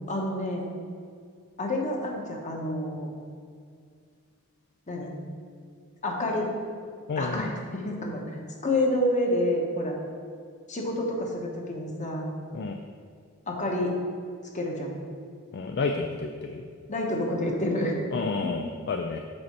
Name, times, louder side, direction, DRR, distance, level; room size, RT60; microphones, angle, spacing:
voice 1, 0.1-0.7 1.6-3.1 4.9-5.1 6.0-6.5 7.2-10.0 10.7-12.3 13.5-13.9 14.5-14.9 16.9-17.9 18.4-18.5, left 1 dB, 35° left, 0 dB, 1.2 m, -28 dB
voice 2, 7.1-7.5 12.5-12.8 15.5-16.6 18.1-19.2, left 4 dB, 50° left, 4 dB, 0.4 m, -30 dB
7.7 x 4.2 x 6.0 m, 2.1 s
head